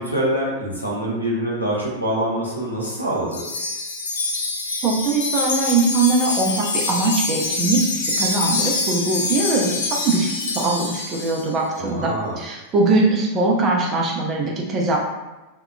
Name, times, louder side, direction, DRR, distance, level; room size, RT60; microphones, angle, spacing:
voice 1, 0.0-3.4 11.7-12.4, right 1 dB, 85° left, -4 dB, 0.7 m, -25 dB
Wind chime, 3.3-11.5, left 3 dB, 65° left, 0.4 m, -25 dB
voice 2, 4.8-9.7 10.0-15.0, right 3 dB, 30° right, -1 dB, 0.5 m, -21 dB
2.7 x 2.3 x 2.2 m, 1.1 s
figure-of-eight pair, 90°, 0 cm